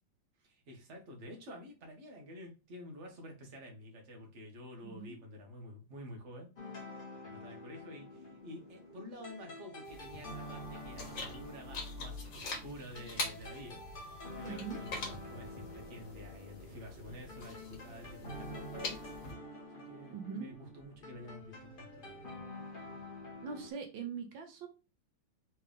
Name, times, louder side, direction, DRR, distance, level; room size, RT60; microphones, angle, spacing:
voice 1, 0.4-6.5 7.3-13.8 14.3-19.0 19.7-22.4, left 1 dB, 40° right, 1 dB, 1.5 m, -50 dB
voice 2, 4.8-5.1 14.4-14.8 20.1-20.5 23.4-24.7, right 6 dB, 80° right, 4 dB, 1.5 m, -42 dB
sound 1, 6.6-23.7, left 1 dB, 35° left, 1.0 m, -48 dB
sound 2, 9.8-19.3, left 3 dB, 65° left, 1.8 m, -44 dB
4.5 x 3.4 x 3.4 m, 0.31 s
omnidirectional pair, 2.1 m